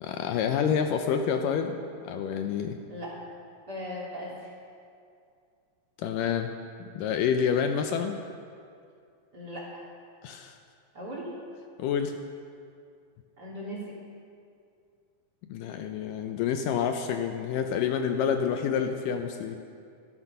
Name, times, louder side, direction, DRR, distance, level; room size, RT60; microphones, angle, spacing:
voice 1, 0.0-1.8 2.0-2.8 6.0-6.5 7.0-8.2 10.2-10.6 11.8-12.1 15.5-19.6, left 7 dB, 80° left, 6 dB, 2.2 m, -28 dB
voice 2, 3.7-4.5 9.3-9.7 10.9-11.3 13.4-14.0, equal, 30° right, -4 dB, 2.8 m, -38 dB
18.0 x 12.0 x 5.5 m, 2.4 s
omnidirectional pair, 4.2 m